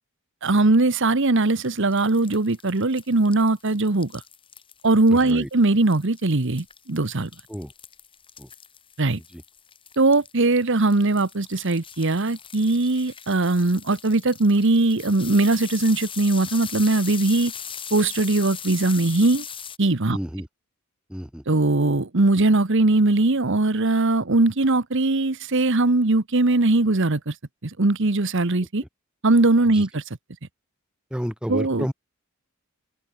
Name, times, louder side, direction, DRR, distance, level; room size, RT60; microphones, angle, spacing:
voice 1, 0.4-4.2 4.8-7.3 9.0-9.2 10.0-17.5 17.9-19.4 19.8-20.2 21.5-27.4 27.6-28.8 29.2-30.0 31.5-31.8, right 2 dB, 60° right, 1.2 m, -20 dB
sound 1, 1.4-19.8, left 8 dB, 25° left, 3.8 m, -40 dB
voice 2, 5.1-5.5 7.5-7.7 8.4-8.5 9.1-9.4 20.1-20.5 21.1-21.4 28.8-28.9 29.6-29.9 31.1-31.9, equal, 5° right, 4.7 m, -31 dB
open air
head